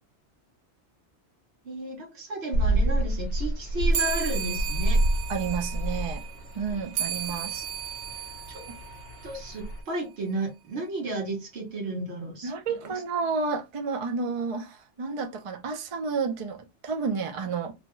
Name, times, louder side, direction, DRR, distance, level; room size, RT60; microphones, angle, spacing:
voice 1, 1.6-5.1 8.5-8.7 9.2-12.5 12.8-13.0, right 2 dB, 70° right, 1.2 m, -33 dB
sound 1, 2.5-9.8, right 1 dB, 65° left, 0.8 m, -28 dB
sound 2, 3.9-9.8, right 9 dB, 90° right, 0.9 m, -35 dB
voice 2, 5.3-6.2 6.5-7.6 12.4-17.7, right 5 dB, 45° right, 0.4 m, -31 dB
2.8 x 2.2 x 3.0 m
omnidirectional pair, 1.2 m